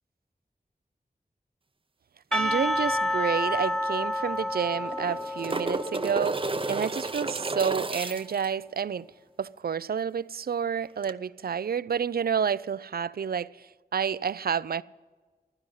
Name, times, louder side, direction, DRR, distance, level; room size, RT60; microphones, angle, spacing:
Percussion / Church bell, 2.3-7.6, left 1 dB, 5° left, 1.1 m, -30 dB
voice 1, 2.3-9.1 9.4-14.8, right 7 dB, 75° right, 0.4 m, -29 dB
sound 1, 3.3-3.4 3.6-3.7 4.8-8.5 11.0-11.1, right 3 dB, 35° right, 0.7 m, -32 dB
15.5 x 11.5 x 5.6 m
wide cardioid pair, 55°, 16 cm